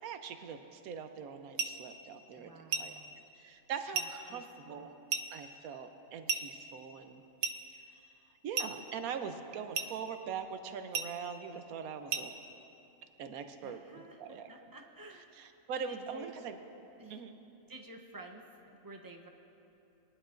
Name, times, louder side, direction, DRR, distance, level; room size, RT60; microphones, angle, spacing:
voice 1, 0.0-3.0 3.3-4.9 5.3-7.2 8.4-12.3 13.2-14.5 15.4-16.6 17.1-17.3, right 6 dB, 85° right, 8 dB, 1.2 m, -42 dB
sound 1, 1.6-1.8 2.7-3.0 3.9-4.2 5.1-5.3 6.3-6.5 7.4-7.7 8.5-8.8 9.7-10.0 10.9-11.2 12.1-12.3, right 5 dB, 65° right, 0.9 m, -34 dB
voice 2, 2.4-3.1 3.9-4.9 13.6-15.3 15.9-16.3 17.0-17.2 17.7-19.3, right 2 dB, 20° right, 1 dB, 0.6 m, -52 dB
19.5 x 11.0 x 2.5 m, 2.9 s
omnidirectional pair, 1.5 m